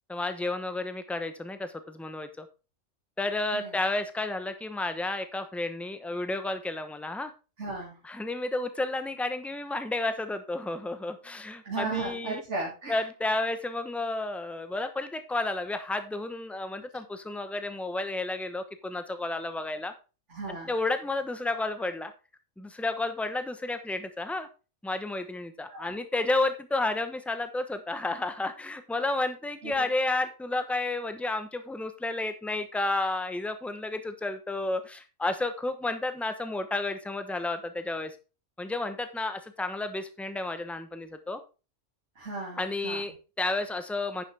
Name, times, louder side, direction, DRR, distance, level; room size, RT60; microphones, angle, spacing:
voice 1, 0.1-2.5 3.2-7.3 8.0-12.4 12.9-19.9 20.5-22.1 22.6-24.5 24.8-38.2 38.6-41.4 42.6-44.2, left 2 dB, ahead, 9 dB, 0.8 m, -31 dB
voice 2, 7.6-8.0 11.6-13.0 20.3-20.7 25.7-25.9 29.6-29.9 42.2-43.0, right 3 dB, 65° right, -4 dB, 2.9 m, -35 dB
10.0 x 6.9 x 3.4 m, 0.32 s
omnidirectional pair, 1.3 m